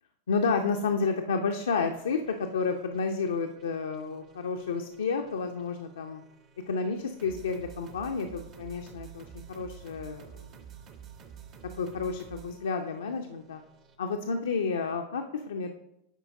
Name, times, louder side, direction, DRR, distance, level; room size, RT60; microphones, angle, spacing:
voice 1, 0.3-6.2 6.7-10.4 11.8-13.6 14.0-15.7, left 5 dB, 65° left, 4 dB, 0.4 m, -31 dB
sound 1, 1.9-14.0, right 8 dB, 35° right, 0.6 m, -51 dB
8.9 x 4.4 x 2.6 m, 0.84 s
figure-of-eight pair, 90°, 0 cm